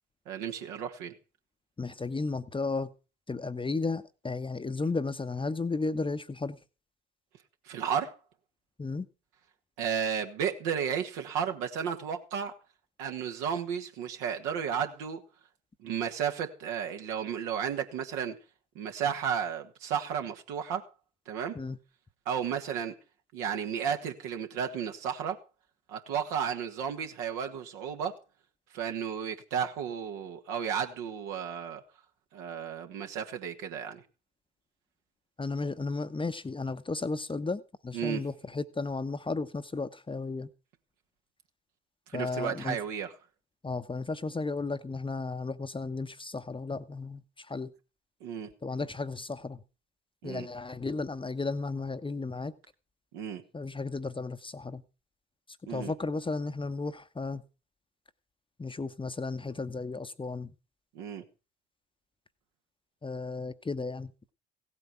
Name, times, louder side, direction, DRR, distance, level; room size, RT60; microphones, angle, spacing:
voice 1, 0.3-1.1 7.7-8.2 9.8-12.6 13.0-15.2 15.8-18.4 18.8-20.8 21.3-21.5 22.3-23.0 23.3-25.4 25.9-28.2 28.7-31.8 32.3-34.0 37.9-38.2 42.1-43.1 48.2-48.5 50.2-50.5 53.1-53.4 55.6-55.9 60.9-61.2, right 8 dB, 65° right, 1.8 m, -33 dB
voice 2, 1.8-2.9 3.3-6.6 8.8-9.1 21.5-21.8 35.4-40.5 42.1-42.8 43.6-47.7 48.6-49.6 50.2-52.5 53.5-54.8 55.7-57.4 58.6-60.5 63.0-64.1, left 3 dB, 15° left, 1.0 m, -34 dB
16.5 x 8.6 x 5.9 m
figure-of-eight pair, 50°, 32 cm